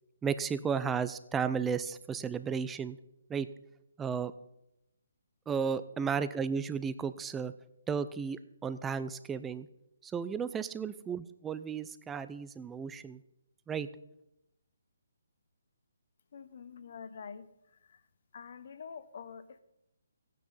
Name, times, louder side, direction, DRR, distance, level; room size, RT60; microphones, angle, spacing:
voice 1, 0.2-3.0 3.3-3.5 4.0-4.3 5.5-7.5 7.9-9.7 10.0-13.2 13.7-13.9, right 6 dB, 10° right, 13 dB, 0.4 m, -34 dB
voice 2, 16.3-17.5 17.9-18.0 18.3-19.6, left 6 dB, 50° left, 13 dB, 1.0 m, -46 dB
15.5 x 9.4 x 5.6 m, 0.85 s
hypercardioid pair, 170°, 0 cm